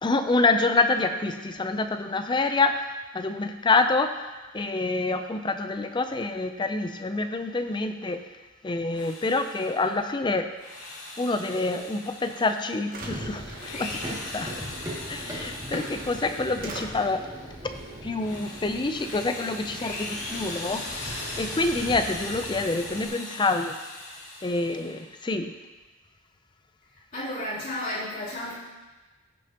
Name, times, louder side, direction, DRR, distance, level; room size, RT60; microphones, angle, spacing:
voice 1, 0.0-2.8 3.1-4.1 4.5-8.3 8.6-10.5 11.2-14.6 15.1-17.2 18.0-20.8 21.4-23.7 24.4-25.5, left 3 dB, 20° left, 8 dB, 0.4 m, -27 dB
Drill, 8.8-10.0 10.5-12.9 13.4-17.1 17.6-25.1, left 2 dB, 75° left, 2.2 m, -39 dB
sound 1, 12.3-12.4 12.8-14.1 15.5-15.6 15.9-16.9, right 3 dB, 40° right, 1.1 m, -43 dB
Run, 13.0-23.1, equal, 15° right, 2.1 m, -40 dB
voice 2, 27.1-28.5, left 1 dB, 40° left, -10 dB, 3.2 m, -32 dB
15.5 x 6.6 x 2.9 m, 1.2 s
head